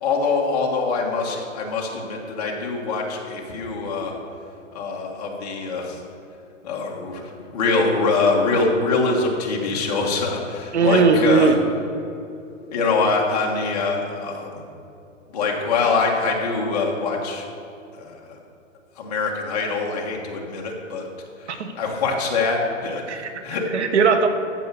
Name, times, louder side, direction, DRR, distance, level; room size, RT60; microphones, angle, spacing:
voice 1, 0.0-4.1 4.7-6.0 6.6-11.5 12.7-14.5 15.3-17.4 18.0-18.4 19.0-21.0 21.4-23.2 23.4-23.6, left 4 dB, 30° left, -1 dB, 1.5 m, -24 dB
voice 2, 10.7-11.6 21.5-21.7 23.1-23.3 23.7-24.3, right 5 dB, 60° right, 8 dB, 1.2 m, -18 dB
14.5 x 5.5 x 7.0 m, 2.7 s
hypercardioid pair, 170°, 39 cm